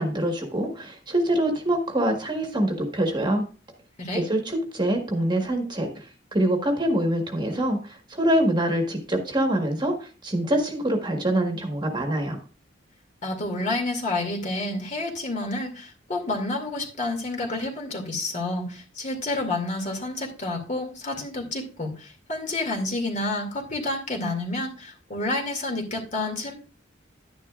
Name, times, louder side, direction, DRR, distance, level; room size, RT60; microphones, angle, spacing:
voice 1, 0.0-3.5 4.1-12.4, right 1 dB, 25° right, 3 dB, 1.5 m, -25 dB
voice 2, 13.2-26.5, left 2 dB, 40° left, 2 dB, 2.4 m, -29 dB
11.0 x 10.0 x 2.4 m, 0.36 s
head